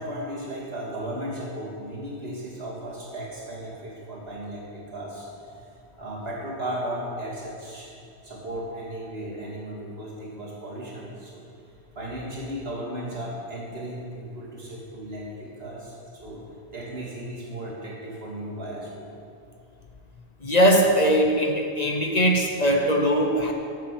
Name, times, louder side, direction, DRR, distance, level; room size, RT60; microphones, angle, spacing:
voice 1, 0.0-5.6 6.0-7.9 8.2-11.4 11.9-16.4 16.7-19.1, right 1 dB, 65° right, -5 dB, 2.8 m, -35 dB
voice 2, 20.4-23.5, equal, 40° left, 2 dB, 1.0 m, -20 dB
9.6 x 7.5 x 7.4 m, 2.4 s
omnidirectional pair, 1.1 m